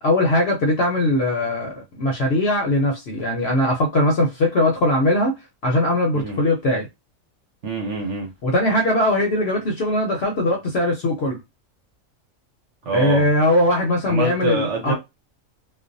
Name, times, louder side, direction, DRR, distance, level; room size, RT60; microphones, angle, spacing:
voice 1, 0.0-5.3 5.6-6.9 8.4-11.4 12.9-14.9, left 1 dB, 60° left, 0.8 m, -20 dB
voice 2, 7.6-8.3 12.8-13.3 14.1-14.9, right 4 dB, 60° right, 1.1 m, -25 dB
2.5 x 2.1 x 2.6 m
omnidirectional pair, 1.4 m